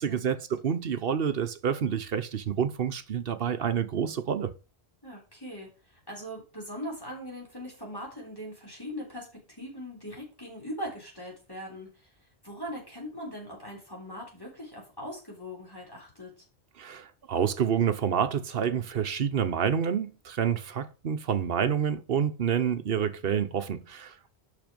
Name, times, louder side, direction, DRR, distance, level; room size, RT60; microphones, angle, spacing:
voice 1, 0.0-4.5 16.8-24.1, right 8 dB, 65° right, 1.1 m, -28 dB
voice 2, 5.0-16.4, equal, 20° left, 3.7 m, -41 dB
6.6 x 6.1 x 5.1 m
omnidirectional pair, 1.1 m